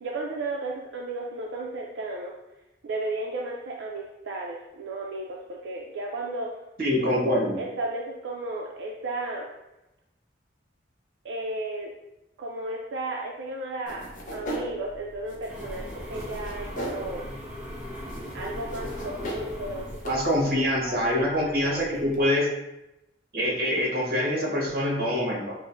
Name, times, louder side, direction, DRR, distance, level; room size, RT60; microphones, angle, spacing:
voice 1, 0.0-2.3 2.8-6.5 7.0-9.5 11.2-11.9 12.4-17.3 18.3-20.4 20.8-21.1 21.4-22.3, right 2 dB, 80° right, -2 dB, 0.4 m, -34 dB
voice 2, 6.8-7.6 20.0-22.5 23.3-25.5, left 1 dB, 50° right, -4 dB, 0.9 m, -25 dB
cutting fruit, 13.9-22.2, equal, 45° left, 0.5 m, -40 dB
sound 1, 15.5-20.5, left 1 dB, 5° right, 0.5 m, -38 dB
4.7 x 2.0 x 2.5 m, 0.93 s
head